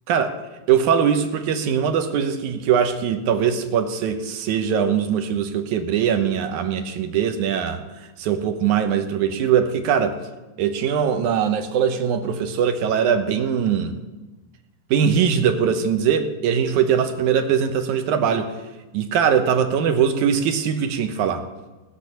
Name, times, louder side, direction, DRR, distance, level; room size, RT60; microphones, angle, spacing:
voice 1, 0.1-0.4 0.7-7.8 8.2-10.2 10.6-13.9 14.9-18.5 18.9-21.4, right 7 dB, 75° right, 7 dB, 2.4 m, -21 dB
19.0 x 6.5 x 6.8 m, 1.1 s
omnidirectional pair, 3.7 m